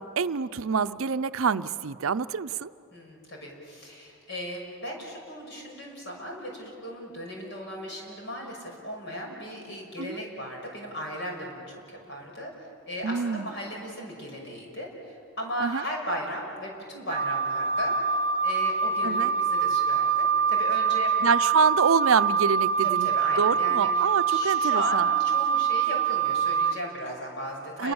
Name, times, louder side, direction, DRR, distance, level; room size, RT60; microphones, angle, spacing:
voice 1, 0.0-2.7 10.0-10.2 13.0-13.5 15.6-15.8 19.0-19.3 21.2-23.1 23.4-25.1 27.8-27.9, right 5 dB, 80° right, 13 dB, 0.6 m, -26 dB
voice 2, 2.9-12.5 12.9-18.0 18.4-21.1 22.8-27.9, equal, 55° left, 0 dB, 5.9 m, -37 dB
Wind instrument woodwind instrument, 17.1-26.7, right 6 dB, 30° right, 1.0 m, -25 dB
29.5 x 23.0 x 7.1 m, 2.5 s
head